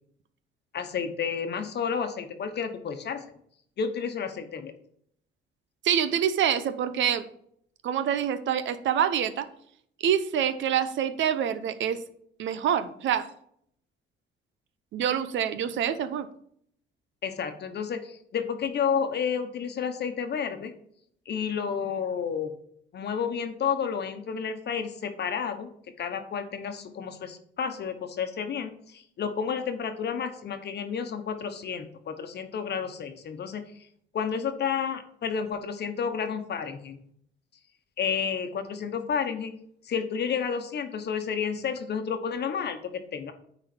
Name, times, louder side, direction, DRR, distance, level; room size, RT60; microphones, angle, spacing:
voice 1, 0.7-3.4 3.8-4.7 17.2-20.7 21.3-22.5 22.9-25.7 26.0-33.6 34.1-37.0 38.0-39.5 39.8-43.3, left 7 dB, 60° left, 8 dB, 1.1 m, -31 dB
voice 2, 5.8-7.2 7.8-9.5 10.0-12.0 12.4-13.2 14.9-16.3, right 9 dB, 70° right, 12 dB, 0.7 m, -26 dB
9.2 x 4.0 x 4.4 m, 0.67 s
cardioid pair, 90°, 20 cm